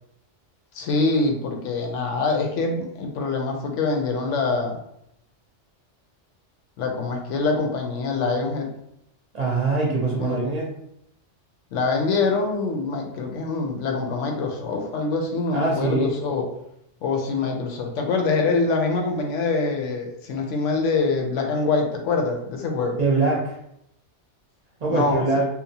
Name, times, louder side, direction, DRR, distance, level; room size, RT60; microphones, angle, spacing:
voice 1, 0.7-4.8 6.8-8.7 10.2-10.4 11.7-16.4 17.0-23.0 24.9-25.2, left 3 dB, 75° left, 2 dB, 0.9 m, -24 dB
voice 2, 9.3-10.7 15.5-16.1 23.0-23.6 24.8-25.5, right 3 dB, 45° right, -3 dB, 0.6 m, -23 dB
2.8 x 2.0 x 2.7 m, 0.76 s
omnidirectional pair, 1.3 m